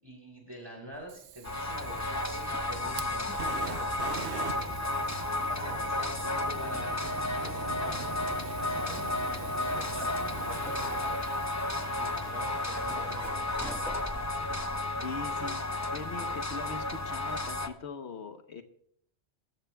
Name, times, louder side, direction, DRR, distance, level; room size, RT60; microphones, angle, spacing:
voice 1, 0.0-4.0 4.3-5.1 5.4-11.4 11.9-14.1, equal, 20° right, -1 dB, 6.0 m, -46 dB
sound 1, 0.9-17.7, equal, ahead, 1.3 m, -51 dB
Fire, 1.1-14.2, right 9 dB, 75° right, 0.9 m, -44 dB
sound 2, 1.4-17.7, left 2 dB, 20° left, 0.6 m, -33 dB
voice 2, 15.0-15.7 15.9-18.6, left 4 dB, 75° left, 7 dB, 1.3 m, -41 dB
21.5 x 14.5 x 2.3 m, 0.65 s
omnidirectional pair, 1.2 m